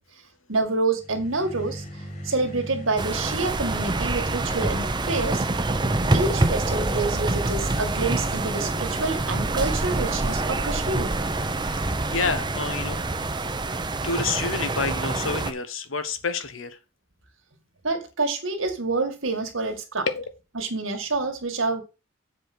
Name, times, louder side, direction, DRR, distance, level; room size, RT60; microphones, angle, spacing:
voice 1, 0.5-1.8 2.2-5.4 6.1-11.1 17.8-20.1 20.5-21.8, right 3 dB, 90° right, 5 dB, 2.1 m, -27 dB
sound 1, 1.0-13.6, equal, 45° left, 3.4 m, -37 dB
sound 2, 3.0-15.5, right 2 dB, 20° right, 0.7 m, -26 dB
voice 2, 11.6-13.0 13.4-13.6 14.0-16.8 20.1-20.2, left 4 dB, 85° left, 11 dB, 1.1 m, -29 dB
7.5 x 5.0 x 6.1 m, 0.29 s
head